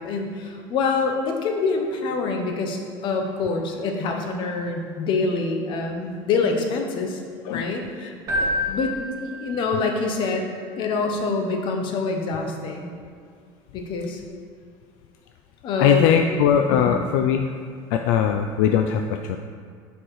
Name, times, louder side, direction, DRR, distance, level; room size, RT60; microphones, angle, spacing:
voice 1, 0.0-7.2 7.5-8.1 8.7-12.9 13.7-14.2 15.6-16.1 16.7-17.0, left 4 dB, 45° left, 3 dB, 0.9 m, -26 dB
Keyboard (musical), 8.3-10.1, left 1 dB, 30° right, 1.8 m, -28 dB
voice 2, 15.8-17.5 17.9-19.4, left 8 dB, 70° left, 5 dB, 0.4 m, -20 dB
6.3 x 4.7 x 4.6 m, 2.2 s
cardioid pair, 145°, 11 cm